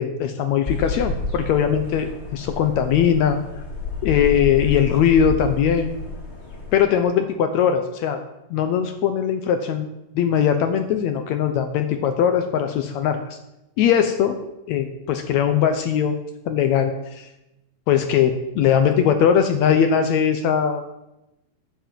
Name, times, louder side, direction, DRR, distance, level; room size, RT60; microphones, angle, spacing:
voice 1, 0.0-3.4 4.0-6.0 6.7-8.2 8.5-9.9 10.1-13.4 13.8-14.4 14.7-16.2 16.5-17.3 17.9-20.9, left 8 dB, 75° left, 7 dB, 1.7 m, -20 dB
sound 1, 0.7-6.7, left 4 dB, 25° left, 1.9 m, -30 dB
11.0 x 7.0 x 7.5 m, 0.92 s
omnidirectional pair, 3.9 m